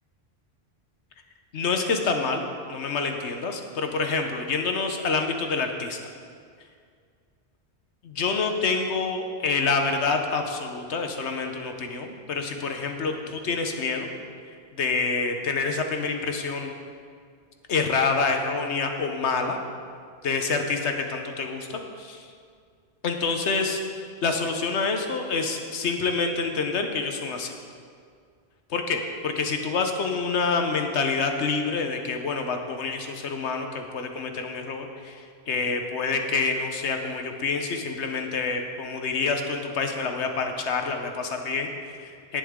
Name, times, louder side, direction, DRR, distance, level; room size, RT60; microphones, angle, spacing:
voice 1, 1.5-2.4 2.7-6.0 8.0-14.1 14.7-16.7 17.7-19.6 20.2-22.3 23.0-27.5 28.7-42.4, left 4 dB, 90° left, 5 dB, 1.3 m, -27 dB
18.5 x 6.9 x 3.7 m, 2.2 s
omnidirectional pair, 1.1 m